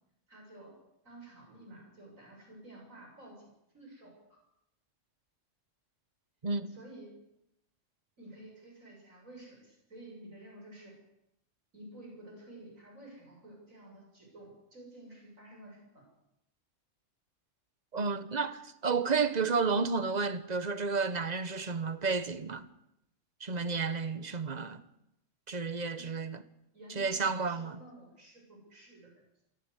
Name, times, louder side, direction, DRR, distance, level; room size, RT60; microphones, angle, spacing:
voice 1, 0.3-0.7 1.0-3.5 3.7-4.4 6.7-7.1 8.2-11.0 11.7-16.1 26.0-26.1 26.7-29.2, right 1 dB, 85° right, 7.0 m, -52 dB
voice 2, 6.4-6.8 17.9-22.7 23.4-24.8 25.5-26.4 27.0-27.8, right 4 dB, 35° right, 1.2 m, -31 dB
24.0 x 15.5 x 8.2 m
omnidirectional pair, 1.4 m